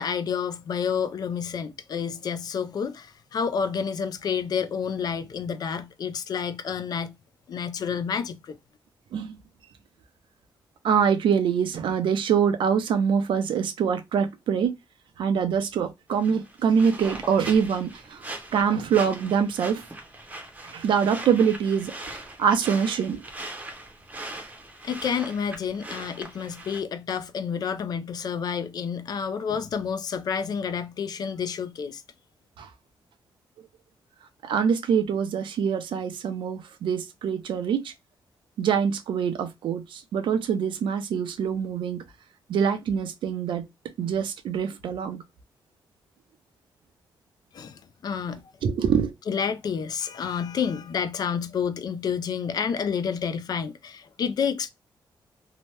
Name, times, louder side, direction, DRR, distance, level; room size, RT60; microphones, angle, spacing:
voice 1, 0.0-7.1 7.5-8.6 24.8-32.0 47.5-48.4 49.3-54.7, left 6 dB, 55° left, 0.4 m, -29 dB
voice 2, 10.8-14.7 15.2-19.8 20.6-21.9 22.4-23.2 32.6-32.7 34.4-37.9 38.6-42.0 42.5-43.7 44.0-45.2 48.6-49.1, right 7 dB, 85° right, 0.5 m, -24 dB
sound 1, 16.1-26.8, right 1 dB, 20° right, 0.7 m, -40 dB
2.8 x 2.1 x 3.1 m
wide cardioid pair, 145°, 8 cm